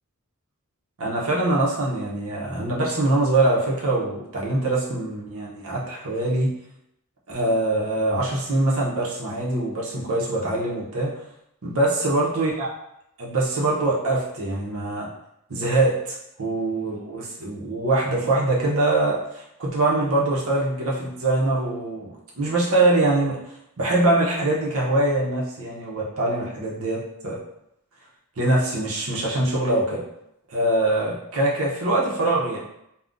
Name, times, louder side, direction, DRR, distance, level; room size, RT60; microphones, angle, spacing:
voice 1, 1.0-6.5 7.3-11.1 11.6-12.7 13.2-15.1 15.5-23.4 23.8-27.4 28.4-30.0 30.5-32.6, right 2 dB, 70° right, -4 dB, 0.8 m, -23 dB
3.6 x 2.3 x 2.5 m, 0.80 s
head